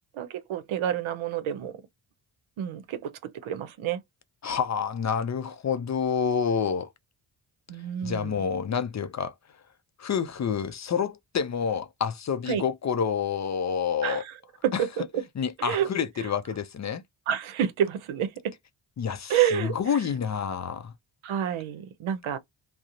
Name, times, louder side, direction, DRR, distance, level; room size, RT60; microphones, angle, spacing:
voice 1, 0.1-1.7 2.6-4.0 7.7-8.4 12.5-12.6 14.0-14.3 14.6-15.2 15.6-15.9 17.3-18.5 19.3-19.7 21.2-22.4, right 10 dB, 80° right, 0.7 m, -28 dB
voice 2, 4.4-6.9 8.0-9.3 10.0-14.2 14.7-14.8 15.4-17.0 19.0-20.9, left 7 dB, 40° left, 0.4 m, -28 dB
2.7 x 2.1 x 2.4 m
cardioid pair, 55°, 48 cm